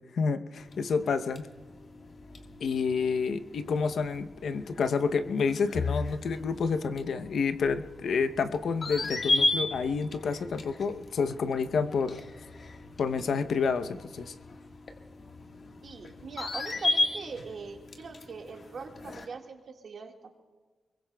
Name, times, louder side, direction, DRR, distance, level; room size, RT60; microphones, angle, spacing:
voice 1, 0.1-1.4 2.6-12.2 13.0-14.3, left 5 dB, 80° left, 10 dB, 0.7 m, -29 dB
sound 1, 0.6-19.3, left 3 dB, 60° left, 1.5 m, -36 dB
voice 2, 15.8-20.1, right 5 dB, 70° right, 2 dB, 1.7 m, -41 dB
24.5 x 22.0 x 2.3 m, 1.4 s
cardioid pair, 85°, 0 cm